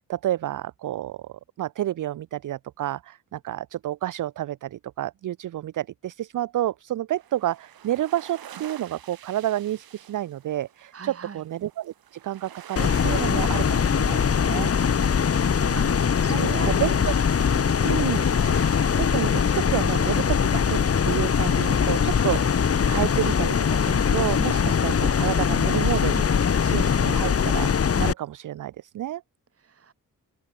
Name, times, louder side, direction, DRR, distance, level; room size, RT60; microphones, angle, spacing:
voice 1, 0.0-15.1 15.7-16.0 16.3-17.1 17.8-18.4 19.0-27.7 28.0-29.2, right 13 dB, 60° right, 0.5 m, -30 dB
sound 1, 7.1-22.5, right 10 dB, 90° right, 3.6 m, -48 dB
voice 2, 10.9-11.4 15.7-17.1 17.5-17.8 29.6-29.9, right 6 dB, 40° right, 1.2 m, -40 dB
sound 2, 12.8-28.1, left 7 dB, 45° left, 1.0 m, -22 dB
open air
cardioid pair, 75°, 35 cm